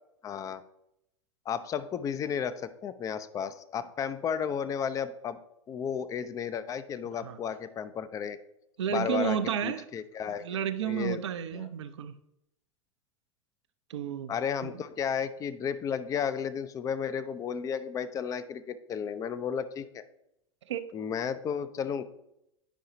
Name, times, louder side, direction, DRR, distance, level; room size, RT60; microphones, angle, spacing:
voice 1, 0.2-0.6 1.5-5.4 5.7-8.4 8.9-10.6 10.8-11.2 11.5-11.7 14.3-20.0 20.9-22.0, left 7 dB, 20° left, 0.5 m, -33 dB
voice 2, 8.8-9.8 10.4-12.1 13.9-14.3 14.6-14.8 20.7-20.9, right 9 dB, 60° right, 0.6 m, -31 dB
10.0 x 5.5 x 2.7 m
figure-of-eight pair, 90°, 17 cm